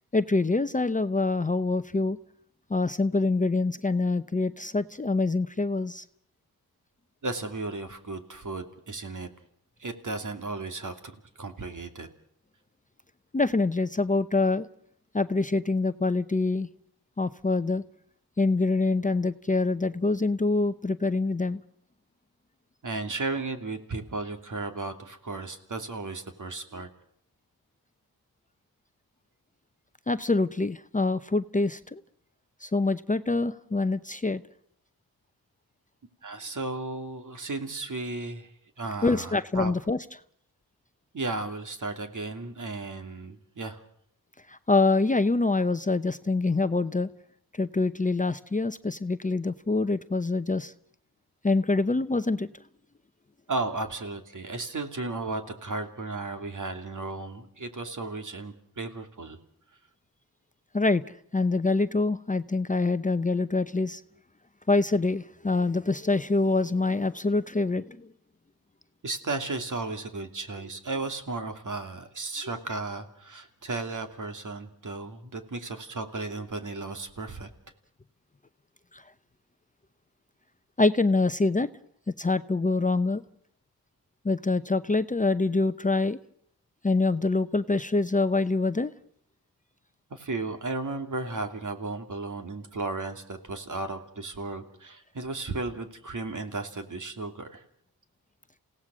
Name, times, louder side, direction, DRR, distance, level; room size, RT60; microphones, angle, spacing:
voice 1, 0.1-2.2 2.7-6.0 13.3-14.7 15.1-16.7 17.2-17.8 18.4-21.6 30.1-32.0 32.6-34.4 39.0-40.0 44.5-47.1 47.6-50.7 51.4-52.5 60.7-61.0 61.3-64.0 64.7-68.1 78.9-79.0 80.8-81.7 82.2-83.2 84.2-86.2 86.8-88.9, left 3 dB, 20° left, 11 dB, 0.8 m, -25 dB
voice 2, 7.2-9.3 9.8-12.1 22.8-26.9 36.2-38.5 38.8-39.7 41.1-43.8 53.5-59.4 69.0-77.5 90.1-97.6, right 3 dB, 50° right, 6 dB, 2.8 m, -34 dB
28.5 x 17.5 x 6.3 m, 0.66 s
cardioid pair, 60°, 38 cm